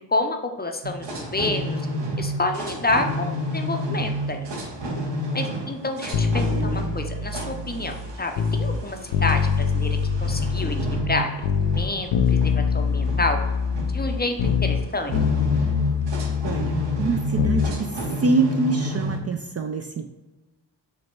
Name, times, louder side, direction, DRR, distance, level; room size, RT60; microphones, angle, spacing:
voice 1, 0.0-1.8 2.2-4.5 5.3-11.3 11.6-13.4 13.9-15.4, left 2 dB, 20° left, 5 dB, 0.5 m, -28 dB
sound 1, 0.8-19.2, equal, 65° right, 1.1 m, -31 dB
sound 2, 6.1-8.8 9.1-11.2 11.4-14.9 15.1-17.7 18.0-18.1, left 6 dB, 90° left, 0.6 m, -24 dB
voice 2, 16.1-20.1, right 4 dB, 35° right, 5 dB, 0.4 m, -26 dB
5.1 x 2.1 x 4.5 m, 1.1 s
cardioid pair, 60°, 46 cm